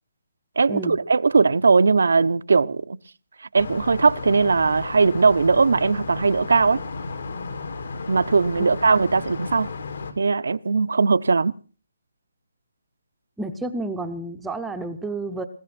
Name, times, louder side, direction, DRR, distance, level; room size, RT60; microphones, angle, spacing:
voice 1, 0.6-3.0 3.5-6.8 8.1-9.7 10.2-11.5, right 4 dB, 75° right, 0.8 m, -19 dB
sound 1, 3.6-10.1, left 4 dB, 70° left, 3.9 m, -34 dB
voice 2, 13.4-15.4, right 2 dB, 5° right, 0.8 m, -30 dB
20.5 x 16.5 x 4.3 m
hypercardioid pair, 170°, 0 cm